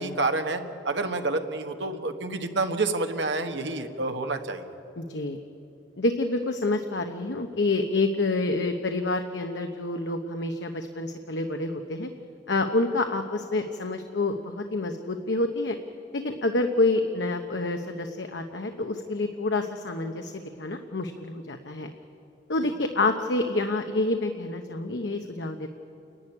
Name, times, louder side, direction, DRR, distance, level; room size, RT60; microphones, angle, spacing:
voice 1, 0.0-4.6, right 3 dB, 80° right, 5 dB, 1.5 m, -28 dB
voice 2, 5.0-5.4 6.0-12.1 12.5-15.8 16.1-21.9 22.5-25.7, left 2 dB, 80° left, 5 dB, 1.0 m, -28 dB
29.0 x 11.5 x 9.9 m, 2.7 s
head